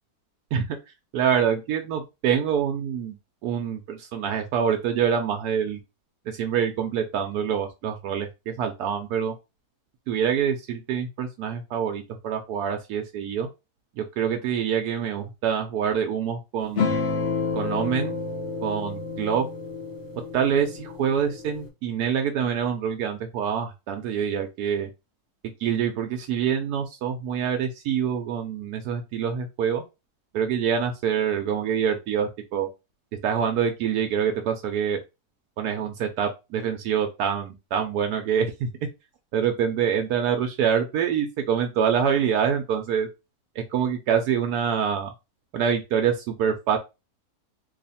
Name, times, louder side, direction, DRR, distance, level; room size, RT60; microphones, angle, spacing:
voice 1, 1.1-3.2 3.4-5.8 6.3-9.3 10.1-13.5 14.0-17.0 17.5-18.2 18.6-19.5 20.3-24.9 25.6-29.8 30.3-32.7 33.2-35.0 35.6-38.7 39.3-43.1 43.7-45.1 45.5-46.8, right 8 dB, 80° right, 4 dB, 1.1 m, -25 dB
sound 1, 16.8-21.7, left 4 dB, 50° left, 1.0 m, -30 dB
3.0 x 2.4 x 4.1 m, 0.26 s
omnidirectional pair, 1.7 m